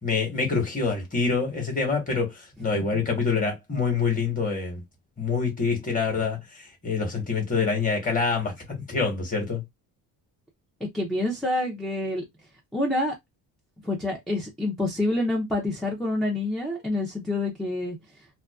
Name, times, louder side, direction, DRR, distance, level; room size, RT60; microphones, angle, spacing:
voice 1, 0.0-4.8 5.2-8.5 8.9-9.6, left 4 dB, 20° left, 1.1 m, -26 dB
voice 2, 10.9-12.2 12.7-13.1 13.8-18.0, left 2 dB, ahead, 0.4 m, -27 dB
2.4 x 2.2 x 2.2 m
cardioid pair, 135°, 40 cm